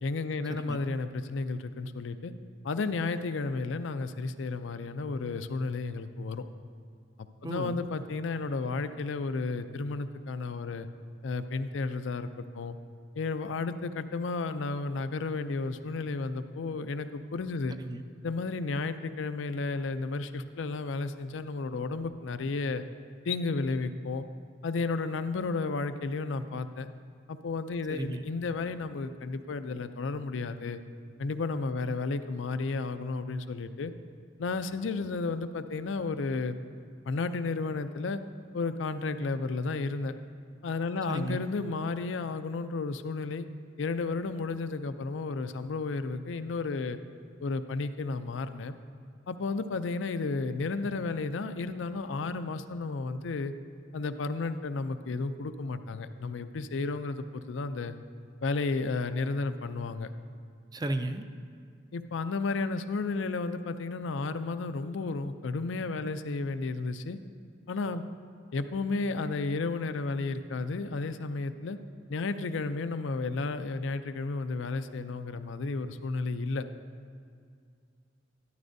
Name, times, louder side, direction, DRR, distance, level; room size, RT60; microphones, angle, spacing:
voice 1, 0.0-2.3 2.6-6.4 7.4-10.9 11.2-12.8 13.2-17.8 18.2-22.8 23.3-24.2 24.6-26.9 27.3-30.8 31.2-33.9 34.4-36.6 37.1-38.2 38.5-40.1 40.6-43.5 43.8-47.0 47.4-48.8 49.3-53.5 53.9-58.0 58.4-60.1 61.9-67.2 67.7-68.0 68.5-71.8 72.1-76.6, left 3 dB, 85° left, 11 dB, 0.5 m, -32 dB
voice 2, 7.4-7.8 17.8-18.0 27.9-28.2 31.9-32.0 41.1-41.4 60.7-61.3, right 1 dB, 20° right, 8 dB, 0.4 m, -34 dB
12.5 x 11.5 x 2.7 m, 2.2 s
head